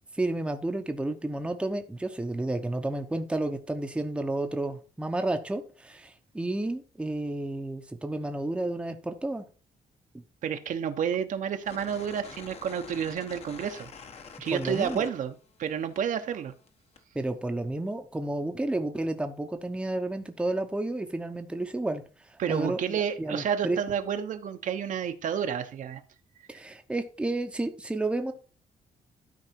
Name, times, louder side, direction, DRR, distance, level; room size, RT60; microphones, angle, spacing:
voice 1, 0.1-9.5 14.5-15.1 17.1-22.0 22.5-23.8 26.5-28.3, right 2 dB, 5° right, 6 dB, 0.9 m, -31 dB
voice 2, 10.4-13.9 14.4-16.5 22.4-26.0, right 8 dB, 60° right, 7 dB, 1.0 m, -30 dB
sound 1, 11.6-15.7 16.0-17.0, left 5 dB, 45° left, 1.2 m, -46 dB
12.0 x 4.8 x 4.6 m, 0.36 s
cardioid pair, 155°, 15 cm